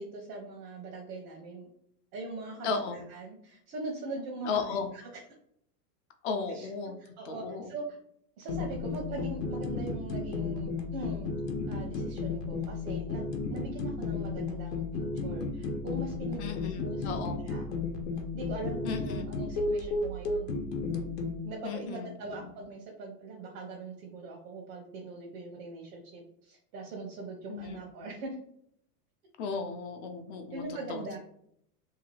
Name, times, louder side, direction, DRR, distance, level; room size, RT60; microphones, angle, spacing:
voice 1, 0.0-1.7 2.1-5.2 6.5-6.7 7.0-8.0 8.4-11.3 11.7-13.2 13.5-17.1 17.4-17.7 18.3-20.5 21.4-28.4 30.5-31.2, right 2 dB, 90° right, 0 dB, 0.8 m, -41 dB
voice 2, 2.6-3.0 4.5-4.9 6.2-7.0 7.3-7.7 16.4-17.4 18.8-19.3 21.6-22.1 27.5-27.8 29.4-30.6 30.9-31.0, left 5 dB, 50° left, 5 dB, 0.4 m, -35 dB
sound 1, 8.5-21.4, left 3 dB, 80° left, 0.8 m, -33 dB
2.8 x 2.3 x 2.9 m, 0.69 s
supercardioid pair, 145°, 48 cm